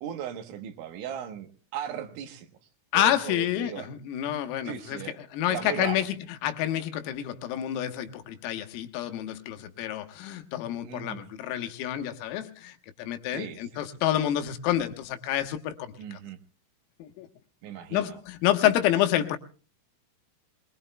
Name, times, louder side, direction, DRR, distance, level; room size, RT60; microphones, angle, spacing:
voice 1, 0.0-1.5 1.7-2.5 2.9-3.9 4.6-5.2 5.5-6.1 10.8-11.2 13.3-13.8 16.0-16.4 17.6-18.2, right 9 dB, 75° right, 3.3 m, -37 dB
voice 2, 2.9-5.0 5.3-6.1 6.4-16.2 17.0-17.3 17.9-19.4, left 12 dB, 85° left, 3.9 m, -28 dB
24.0 x 22.0 x 2.2 m
omnidirectional pair, 5.9 m